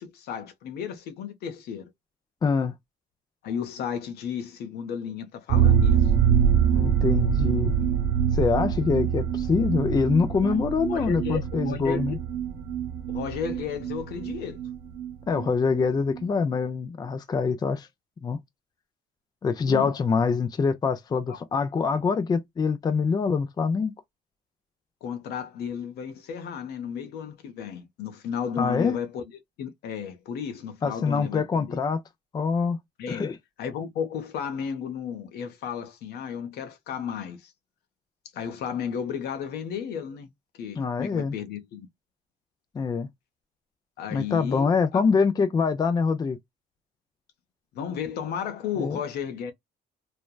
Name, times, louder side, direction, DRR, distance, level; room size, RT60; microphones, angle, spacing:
voice 1, 0.0-1.9 3.4-6.1 7.8-8.0 10.4-10.6 10.9-12.2 13.1-14.6 19.6-19.9 21.3-21.4 25.0-31.8 33.0-33.2 33.6-37.5 38.3-40.3 40.6-41.9 44.0-45.0 47.7-49.5, left 7 dB, 70° left, 0.8 m, -33 dB
voice 2, 2.4-2.8 6.7-7.7 8.3-12.2 15.3-17.9 18.2-18.4 19.4-23.9 28.6-29.0 30.8-32.0 32.3-32.8 33.1-33.4 40.8-41.3 42.7-43.1 44.1-46.4 48.8-49.0, left 5 dB, 25° left, 0.4 m, -25 dB
sound 1, 5.5-15.1 15.4-15.5 15.8-15.9, right 8 dB, 70° right, 0.6 m, -24 dB
3.3 x 2.1 x 2.2 m
cardioid pair, 110°, 17 cm